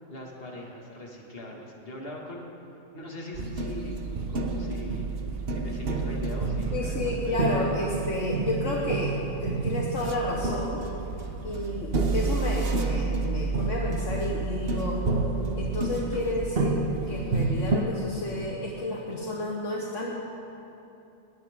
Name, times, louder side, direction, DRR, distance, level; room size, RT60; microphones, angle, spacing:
voice 1, 0.1-2.5 2.9-4.0 4.3-5.1 5.5-7.8, left 1 dB, 45° left, -1 dB, 2.3 m, -40 dB
sound 1, 3.3-17.8, right 3 dB, 45° right, 1.2 m, -29 dB
voice 2, 6.7-10.8 11.4-15.0 15.6-16.8 17.1-20.1, left 2 dB, 60° left, -3 dB, 1.7 m, -31 dB
20.0 x 17.5 x 3.7 m, 2.9 s
omnidirectional pair, 1.5 m